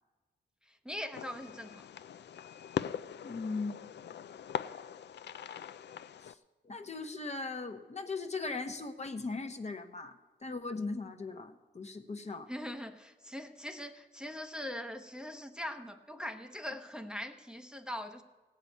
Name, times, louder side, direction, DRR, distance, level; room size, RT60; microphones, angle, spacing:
voice 1, 0.6-1.8 12.5-18.2, left 1 dB, 5° right, 5 dB, 0.8 m, -41 dB
Fireworks, 1.1-6.3, left 9 dB, 65° left, 0.4 m, -41 dB
voice 2, 3.2-3.7 6.2-6.4 6.6-12.5, left 3 dB, 35° left, 7 dB, 0.9 m, -39 dB
17.0 x 5.9 x 9.1 m, 1.3 s
wide cardioid pair, 105°, 19 cm